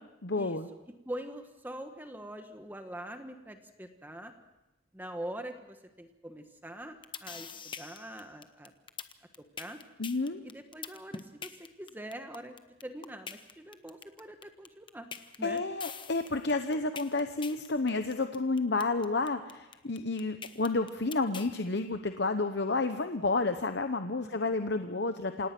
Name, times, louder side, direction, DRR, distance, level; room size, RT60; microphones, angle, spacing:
voice 1, 0.2-0.7 10.0-10.4 15.4-25.5, left 3 dB, 60° left, 8 dB, 0.9 m, -30 dB
voice 2, 1.1-4.3 4.9-8.7 9.6-9.8 10.4-12.6 12.8-15.1 15.4-15.6 24.2-24.3, right 1 dB, 10° right, 6 dB, 1.2 m, -43 dB
sound 1, 6.8-21.5, left 6 dB, 25° left, 1.0 m, -43 dB
27.5 x 18.0 x 6.1 m, 0.99 s
head